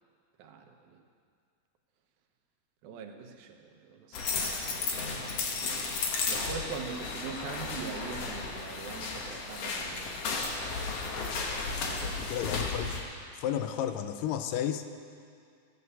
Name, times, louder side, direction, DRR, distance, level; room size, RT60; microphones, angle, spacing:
voice 1, 0.4-1.0 2.8-3.6 3.9-4.2 4.7-5.5 6.3-10.3 11.8-12.4, right 6 dB, 90° right, 4 dB, 2.8 m, -42 dB
sound 1, 4.1-13.0, left 4 dB, 60° left, 1.8 m, -34 dB
voice 2, 12.2-12.9 13.4-14.9, left 10 dB, 80° left, 9 dB, 2.2 m, -32 dB
16.0 x 8.4 x 6.8 m, 2.3 s
omnidirectional pair, 4.1 m